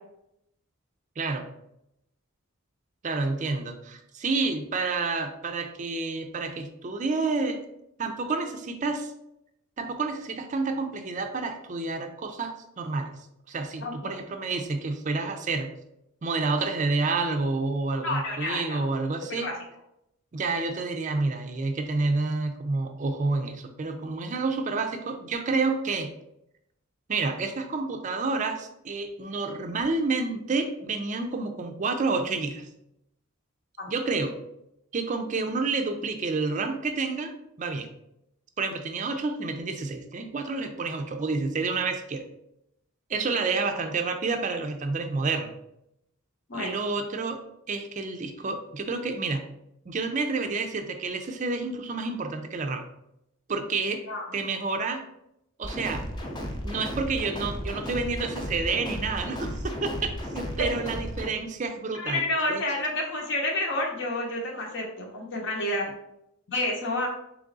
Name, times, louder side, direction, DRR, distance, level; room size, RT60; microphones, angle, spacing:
voice 1, 1.2-1.5 3.0-7.6 8.0-9.1 9.8-13.1 13.5-15.7 16.2-19.5 20.3-26.1 27.1-32.7 33.9-34.4 34.9-37.3 37.6-37.9 38.6-42.3 43.1-45.5 46.5-47.4 47.7-49.5 49.9-52.8 53.5-54.0 54.3-55.0 55.6-56.0 56.6-62.6, right 3 dB, 35° right, 6 dB, 0.4 m, -29 dB
voice 2, 13.8-14.2 18.0-18.9 19.4-19.5 33.8-33.9 46.5-46.8 53.9-54.3 60.6-60.7 61.9-65.9 66.5-67.1, left 1 dB, 55° left, 0 dB, 0.8 m, -29 dB
sound 1, 55.6-61.3, equal, 20° left, 0.5 m, -34 dB
3.6 x 3.1 x 3.9 m, 0.82 s
head